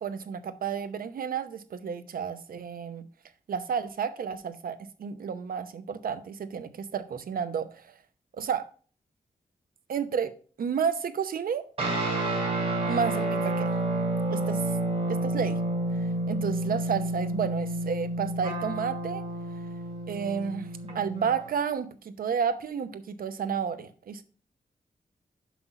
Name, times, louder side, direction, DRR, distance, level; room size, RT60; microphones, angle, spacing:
voice 1, 0.0-3.0 3.5-7.9 8.3-8.7 9.9-11.6 12.9-13.7 14.3-14.6 15.1-15.6 16.0-19.2 20.1-24.2, right 7 dB, 80° right, 11 dB, 0.8 m, -31 dB
sound 1, 11.8-21.5, right 1 dB, 45° right, 2.2 m, -30 dB
6.0 x 5.5 x 5.9 m, 0.41 s
wide cardioid pair, 160°, 15 cm